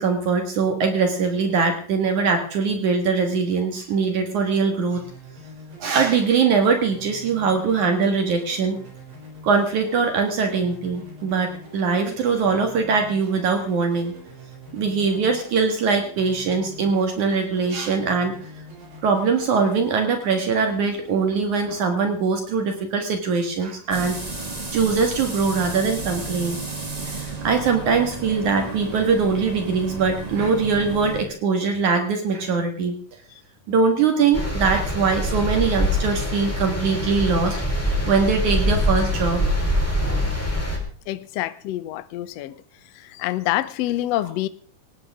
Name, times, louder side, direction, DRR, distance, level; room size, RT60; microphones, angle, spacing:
voice 1, 0.0-5.0 5.8-8.8 9.4-14.1 14.7-18.3 19.0-24.2 24.7-26.6 27.2-32.9 33.7-37.6 38.0-39.4, right 5 dB, 65° right, 5 dB, 3.1 m, -22 dB
sound 1, 4.9-22.7, right 1 dB, 90° right, 8.4 m, -44 dB
sound 2, 23.9-31.3, right 3 dB, 35° right, 0.6 m, -33 dB
sound 3, 34.3-40.8, left 1 dB, 5° left, 3.8 m, -24 dB
voice 2, 41.1-42.6 42.8-44.5, left 15 dB, 70° left, 14 dB, 1.6 m, -27 dB
19.0 x 17.0 x 3.6 m, 0.42 s
omnidirectional pair, 3.9 m